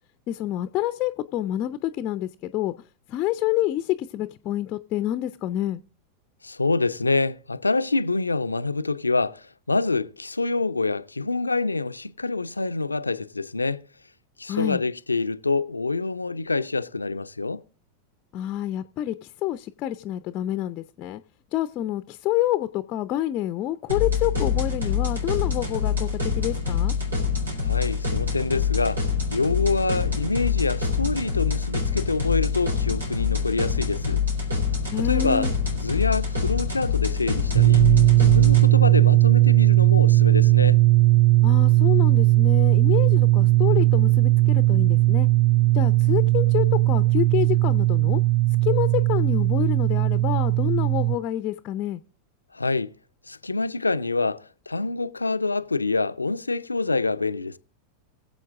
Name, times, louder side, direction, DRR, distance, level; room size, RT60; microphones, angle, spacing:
voice 1, 0.3-2.7 3.1-5.8 14.5-14.8 18.3-21.2 21.5-26.9 34.9-35.5 41.4-45.3 45.7-48.2 48.6-52.0, left 13 dB, 35° left, 0.7 m, -27 dB
voice 2, 6.4-13.8 14.4-17.6 27.6-29.0 29.3-34.2 35.0-37.8 38.1-40.8 52.5-52.9 53.3-57.6, left 3 dB, 80° left, 0.6 m, -26 dB
sound 1, 23.9-38.7, left 6 dB, 75° right, 4.1 m, -25 dB
sound 2, 37.5-51.2, right 18 dB, 40° right, 0.5 m, -18 dB
22.0 x 7.8 x 3.6 m
figure-of-eight pair, 90°, 0 cm